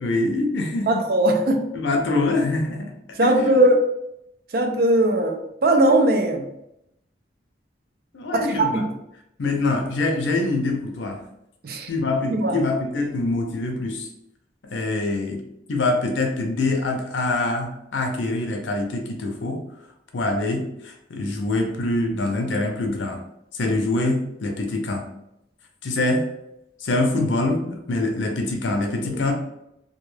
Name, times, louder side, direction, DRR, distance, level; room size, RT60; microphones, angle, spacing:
voice 1, 0.0-1.0 1.7-2.9 3.2-3.5 8.1-8.9 9.4-11.2 11.9-14.1 14.6-15.4 15.7-19.6 20.1-23.2 23.5-25.1 25.8-26.2 26.8-29.3, left 2 dB, 90° left, 3 dB, 0.5 m, -24 dB
voice 2, 0.9-1.7 3.2-3.8 4.5-6.5 8.3-8.9 11.6-11.9 12.3-12.6, right 1 dB, 55° right, 4 dB, 0.4 m, -19 dB
2.3 x 2.2 x 3.1 m, 0.81 s
head